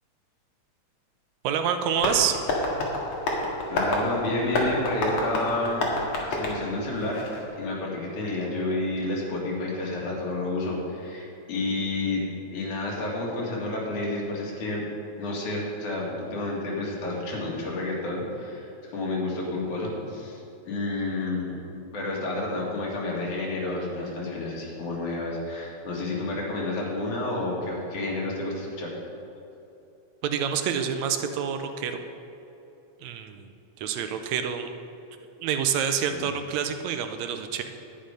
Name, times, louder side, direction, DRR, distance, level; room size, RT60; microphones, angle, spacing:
voice 1, 1.4-2.4 30.2-32.0 33.0-33.5 33.8-34.7 35.4-37.6, right 8 dB, 75° right, 7 dB, 1.9 m, -27 dB
Tap, 2.0-7.5, left 2 dB, 60° left, 2.7 m, -29 dB
voice 2, 3.7-5.9 6.3-7.2 7.5-12.2 12.5-14.8 15.2-21.6 21.9-28.9 36.1-36.3, left 2 dB, 85° left, -3 dB, 3.5 m, -30 dB
11.5 x 9.5 x 5.1 m, 2.9 s
omnidirectional pair, 3.3 m